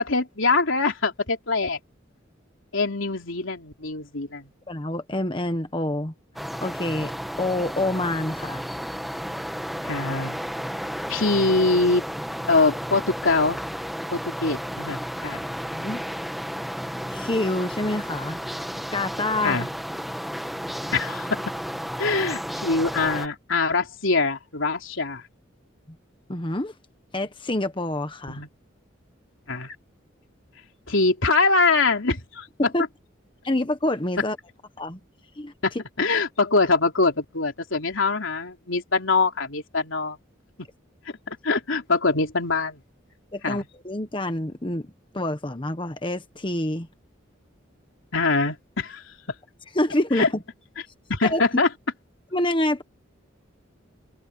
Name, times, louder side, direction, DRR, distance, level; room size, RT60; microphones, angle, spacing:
voice 1, 0.0-1.8 2.7-4.5 9.8-10.4 11.1-12.0 12.5-13.6 14.1-15.4 19.4-19.7 20.9-21.4 22.0-25.2 28.3-28.5 29.5-29.7 30.9-32.5 35.6-35.7 36.0-40.2 41.3-42.8 43.4-43.7 48.1-49.0 50.2-50.3 51.1-51.7, left 3 dB, 85° left, 3.3 m, -23 dB
voice 2, 4.7-6.1 6.6-7.1 7.4-8.6 15.7-16.0 17.1-18.4 18.9-19.6 26.3-26.7 27.1-28.4 32.6-32.8 33.4-34.4 34.8-35.0 35.4-35.5 43.3-44.9 45.1-46.9 49.7-50.4 51.2-51.4 52.3-52.8, left 1 dB, 25° left, 1.3 m, -27 dB
sound 1, 6.4-23.3, equal, ahead, 1.3 m, -33 dB
head